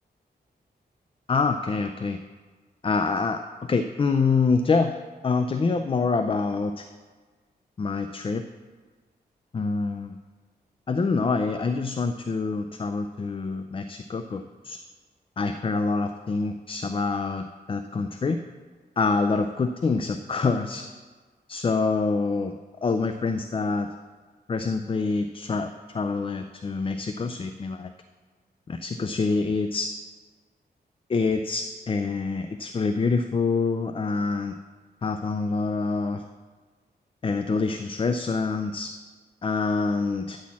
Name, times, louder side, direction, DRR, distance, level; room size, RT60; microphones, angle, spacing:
voice 1, 1.3-2.2 2.8-5.0 5.2-6.9 7.8-8.4 9.5-10.2 10.9-14.8 15.4-18.4 19.0-20.9 21.5-22.5 22.8-23.9 24.5-27.9 28.7-30.0 31.1-34.6 35.0-36.2 37.2-38.9 39.4-40.4, left 4 dB, 30° left, 8 dB, 0.4 m, -26 dB
9.6 x 4.2 x 7.2 m, 1.4 s
cardioid pair, 75°, 17 cm